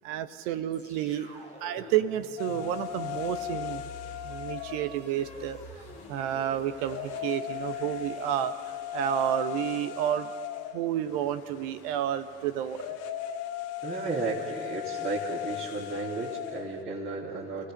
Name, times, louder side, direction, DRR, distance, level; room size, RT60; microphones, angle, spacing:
voice 1, 0.0-1.3 1.6-3.8 4.2-5.6 6.1-10.3 10.7-12.9, right 11 dB, 60° right, 11 dB, 1.1 m, -30 dB
sound 1, 0.7-10.9, equal, 90° right, 3.7 m, -48 dB
sound 2, 2.4-16.8, left 11 dB, 50° left, 1.6 m, -38 dB
voice 2, 13.8-17.7, right 3 dB, 35° right, -6 dB, 3.8 m, -34 dB
30.0 x 17.5 x 7.1 m, 2.1 s
figure-of-eight pair, 60°, 31 cm